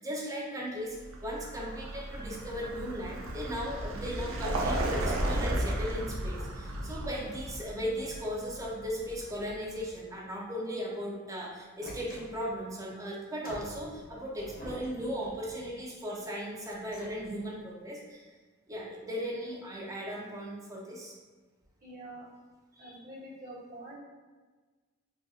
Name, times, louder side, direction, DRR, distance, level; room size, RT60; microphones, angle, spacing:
voice 1, 0.0-18.3 18.7-21.1, equal, 15° right, -3 dB, 0.6 m, -37 dB
Vehicle, 1.0-9.8, right 1 dB, 75° right, 0.5 m, -34 dB
sound 1, 11.8-12.7 13.4-15.8 16.5-17.6, equal, 45° left, 0.6 m, -47 dB
voice 2, 21.8-22.2 22.7-24.0, right 1 dB, 45° right, -9 dB, 1.3 m, -46 dB
3.9 x 2.6 x 2.4 m, 1.3 s
head